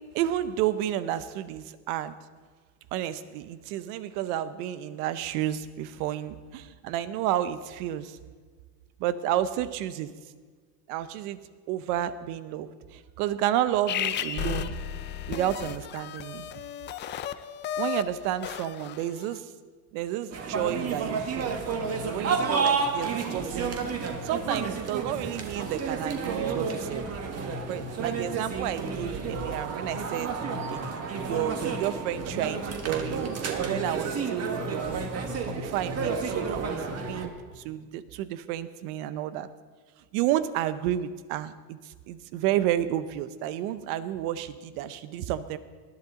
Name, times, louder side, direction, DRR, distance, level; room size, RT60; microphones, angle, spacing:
voice 1, 0.1-2.1 2.9-8.2 9.0-10.1 10.9-11.4 11.7-14.7 15.3-16.5 17.8-19.5 19.9-21.5 22.0-23.8 24.2-27.1 27.7-30.3 30.7-35.1 35.5-39.5 40.1-45.6, right 12 dB, 70° right, 13 dB, 0.9 m, -31 dB
sound 1, 13.9-19.3, left 10 dB, 25° left, 0.3 m, -34 dB
sound 2, 20.3-37.3, right 5 dB, 30° right, 1.7 m, -31 dB
19.5 x 11.0 x 3.8 m, 1.5 s
supercardioid pair, 125°, 46 cm